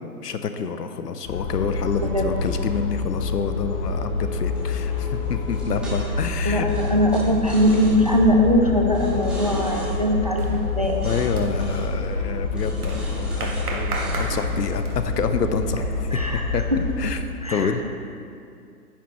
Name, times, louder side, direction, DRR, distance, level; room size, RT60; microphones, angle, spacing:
voice 1, 0.2-6.7 11.0-16.2 16.5-17.2 17.5-17.9, left 6 dB, 80° left, 9 dB, 0.8 m, -28 dB
sound 1, 1.2-17.1, left 3 dB, 25° left, 1.0 m, -27 dB
sound 2, 4.6-6.3 6.7-8.1 8.9-10.0 10.8-11.3 11.6-11.9 12.5-13.7 13.9-14.8, equal, ahead, 1.6 m, -39 dB
voice 2, 6.5-11.0 16.1-16.4 17.4-17.9, equal, 30° right, 1 dB, 0.3 m, -21 dB
sound 3, 8.7-9.1 9.5-15.2, right 2 dB, 70° right, 1.7 m, -35 dB
10.0 x 10.0 x 3.1 m, 2.4 s
hypercardioid pair, 140°, 47 cm